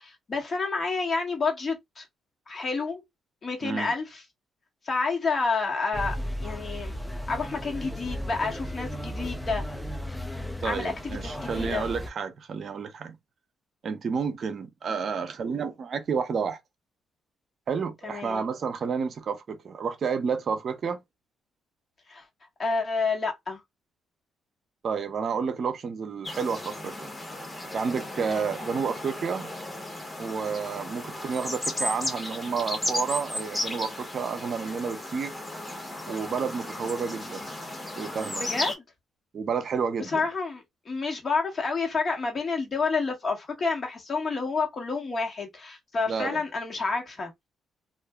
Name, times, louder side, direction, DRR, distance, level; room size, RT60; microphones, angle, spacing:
voice 1, 0.0-2.1 2.5-3.0 3.4-4.2 4.8-6.2 6.4-7.0 7.3-9.6 10.6-11.9 18.0-18.4 22.1-22.2 22.6-23.6 28.2-28.5 38.4-38.8 40.1-47.3, left 4 dB, 40° left, 1.3 m, -29 dB
voice 2, 3.6-3.9 10.6-13.2 13.8-16.6 17.7-21.0 24.8-27.1 27.7-29.5 30.2-35.3 36.1-37.5 38.0-38.4 39.3-40.2 46.1-46.4, right 5 dB, 55° right, 0.6 m, -30 dB
sound 1, 5.9-12.1, equal, ahead, 0.5 m, -35 dB
sound 2, 26.2-38.7, left 1 dB, 15° left, 1.1 m, -35 dB
2.5 x 2.1 x 3.5 m
cardioid pair, 90°, 0 cm